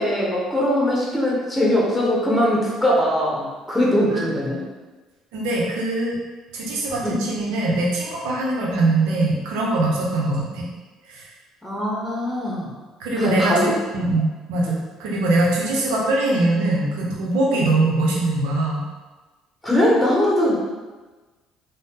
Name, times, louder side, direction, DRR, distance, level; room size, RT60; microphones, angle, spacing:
voice 1, 0.0-4.6 7.0-7.2 11.6-12.7 13.2-13.7 14.6-14.7 19.6-20.6, left 1 dB, 5° left, -5 dB, 0.9 m, -21 dB
voice 2, 5.3-6.2 6.5-10.7 11.1-11.3 13.0-18.8, right 2 dB, 85° right, -3 dB, 0.7 m, -22 dB
2.6 x 2.1 x 3.5 m, 1.3 s
supercardioid pair, 75°, 0 cm